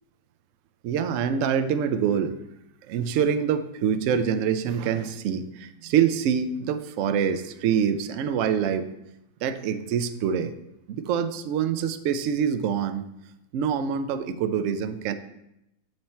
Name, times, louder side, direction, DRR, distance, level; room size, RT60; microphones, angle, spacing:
voice 1, 0.8-2.4 2.9-8.9 9.4-10.5 10.9-13.0 13.5-15.1, right 8 dB, 70° right, 10 dB, 0.7 m, -25 dB
7.9 x 4.3 x 4.2 m, 0.84 s
omnidirectional pair, 1.8 m